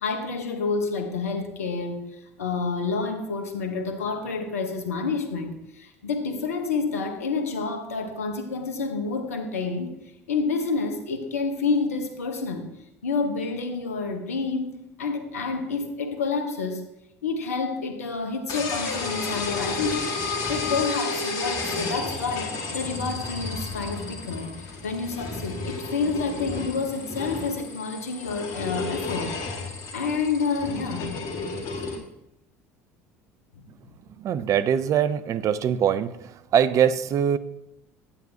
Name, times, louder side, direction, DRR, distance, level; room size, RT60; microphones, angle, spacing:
voice 1, 0.0-10.0 10.3-12.7 13.0-16.8 17.2-29.4 29.9-31.1, left 4 dB, 80° left, 6 dB, 1.1 m, -29 dB
sound 1, 18.5-32.0, left 3 dB, 50° left, 2.0 m, -32 dB
voice 2, 34.2-36.1 36.5-37.4, right 8 dB, 45° right, 14 dB, 0.5 m, -22 dB
9.7 x 9.0 x 2.8 m, 0.86 s
figure-of-eight pair, 65°, 8 cm